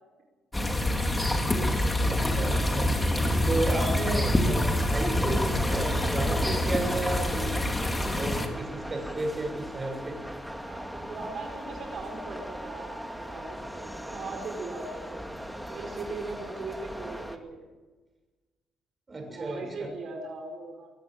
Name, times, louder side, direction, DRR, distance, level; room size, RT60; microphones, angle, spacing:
sound 1, 0.5-8.5, left 1 dB, 15° left, 3.6 m, -26 dB
voice 1, 2.0-2.9 3.5-7.6 8.1-10.2 19.1-19.9, right 2 dB, 30° right, 4 dB, 6.8 m, -33 dB
sound 2, 5.1-17.4, equal, 5° right, 2.2 m, -39 dB
voice 2, 10.7-15.2 15.7-17.6 19.3-20.9, right 3 dB, 60° right, 2 dB, 5.0 m, -39 dB
23.5 x 15.0 x 9.0 m, 1.3 s
cardioid pair, 90°, 0 cm